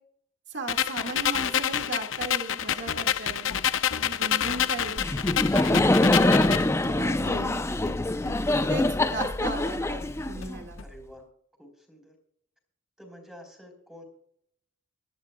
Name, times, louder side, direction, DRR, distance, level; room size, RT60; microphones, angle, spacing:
voice 1, 0.5-3.5 3.9-5.0 5.5-7.8 8.7-8.8 9.1-10.8, right 2 dB, 60° right, 5 dB, 1.9 m, -36 dB
sound 1, 0.7-6.7, left 10 dB, 70° left, 0.6 m, -28 dB
sound 2, 2.9-10.8, left 3 dB, 90° left, 1.0 m, -44 dB
Laughter, 5.0-10.8, left 2 dB, 15° left, 0.4 m, -24 dB
voice 2, 10.8-11.3 11.6-12.2 13.0-14.0, equal, ahead, 3 dB, 3.9 m, -49 dB
23.0 x 11.5 x 2.2 m, 0.69 s
head